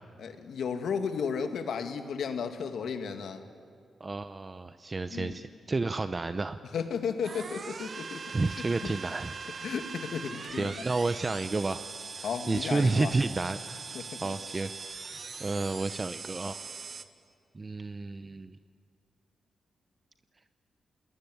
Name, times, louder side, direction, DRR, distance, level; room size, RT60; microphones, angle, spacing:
voice 1, 0.2-3.4 5.1-5.3 6.7-8.9 9.6-10.7 12.2-13.1 13.9-14.3, left 6 dB, 80° left, 7 dB, 2.1 m, -34 dB
voice 2, 4.0-6.6 8.3-9.3 10.5-11.9 12.2-14.7 15.4-16.6 17.5-18.6, right 3 dB, 30° right, 10 dB, 0.8 m, -31 dB
sound 1, 7.2-17.0, right 5 dB, 45° right, 1.4 m, -41 dB
29.5 x 20.5 x 9.5 m, 2.2 s
cardioid pair, 95°, 0 cm